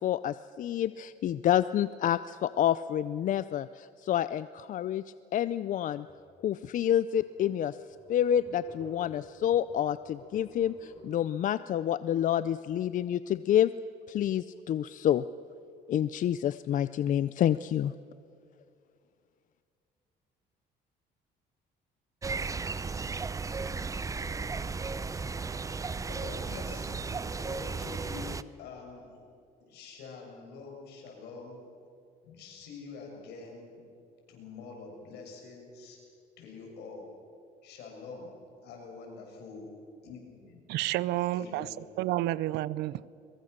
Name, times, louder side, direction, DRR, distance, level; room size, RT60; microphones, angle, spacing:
voice 1, 0.0-5.0 5.3-6.1 6.4-7.8 8.1-13.7 14.1-15.2 15.9-17.9, left 10 dB, 50° left, 15 dB, 0.5 m, -28 dB
sound 1, 6.1-6.3 6.8-6.9 7.2-7.3 7.7-11.0, left 2 dB, 35° left, 5.2 m, -51 dB
sound 2, 22.2-28.4, right 4 dB, 20° right, 0.6 m, -35 dB
voice 2, 26.1-29.3 29.7-31.6 32.2-33.8 34.3-36.0 36.4-37.0 37.6-38.3 38.6-39.7 40.0-40.6 41.3-41.8, left 4 dB, 80° left, 1 dB, 6.6 m, -46 dB
voice 3, 40.7-41.7 42.0-43.0, right 16 dB, 85° right, 20 dB, 0.6 m, -30 dB
22.5 x 22.5 x 6.7 m, 2.4 s
cardioid pair, 110°, 17 cm